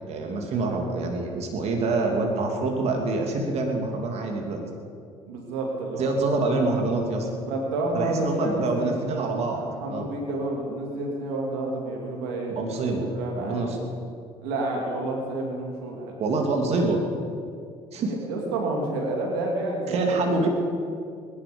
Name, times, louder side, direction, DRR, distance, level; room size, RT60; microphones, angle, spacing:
voice 1, 0.1-4.6 6.0-7.3 7.9-9.6 9.9-10.1 12.5-13.8 16.2-17.0 17.9-18.1 19.9-20.5, right 3 dB, 60° right, 2 dB, 2.5 m, -26 dB
voice 2, 5.3-6.4 7.5-8.9 9.6-13.8 14.4-16.2 18.0-20.5, right 2 dB, 85° right, 0 dB, 2.6 m, -30 dB
22.0 x 11.0 x 5.2 m, 2.3 s
supercardioid pair, 70°, 12 cm